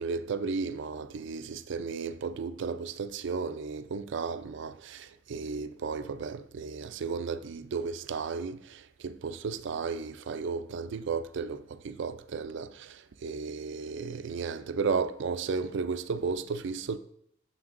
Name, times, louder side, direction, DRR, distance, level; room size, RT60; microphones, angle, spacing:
voice 1, 0.0-17.0, right 5 dB, 65° right, 0.4 m, -34 dB
9.3 x 7.0 x 2.5 m
head